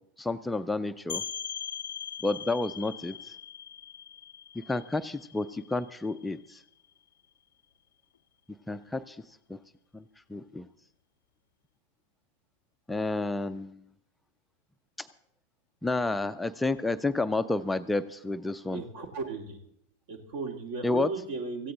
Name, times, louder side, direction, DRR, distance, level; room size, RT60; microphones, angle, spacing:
voice 1, 0.2-1.2 2.2-3.3 4.7-6.6 8.7-9.2 9.5-9.6 9.9-10.0 10.3-10.7 12.9-13.8 15.8-18.8 20.8-21.1, left 2 dB, 5° left, 10 dB, 0.5 m, -30 dB
sound 1, 1.1-6.6, left 8 dB, 65° left, 0.5 m, -41 dB
voice 2, 18.7-19.6 20.1-21.7, right 4 dB, 55° right, 5 dB, 2.5 m, -36 dB
17.0 x 15.0 x 3.8 m, 0.73 s
figure-of-eight pair, 90°, 0 cm